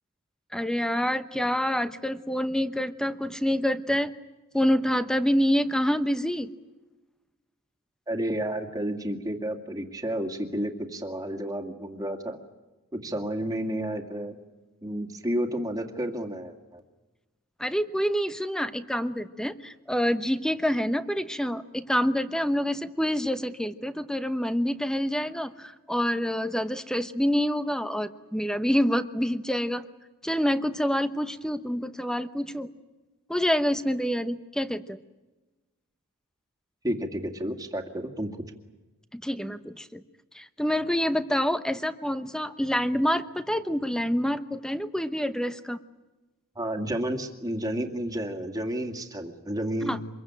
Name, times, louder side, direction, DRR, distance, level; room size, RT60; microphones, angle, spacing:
voice 1, 0.5-4.1 4.5-6.5 17.6-29.8 30.2-32.7 33.3-35.0 39.1-40.0 40.3-45.8 49.8-50.0, equal, 5° left, 11 dB, 1.0 m, -27 dB
voice 2, 8.1-12.4 12.9-14.4 14.8-16.8 36.8-38.3 46.6-50.0, right 1 dB, 15° right, 5 dB, 2.2 m, -31 dB
25.5 x 22.5 x 9.0 m, 1.1 s
head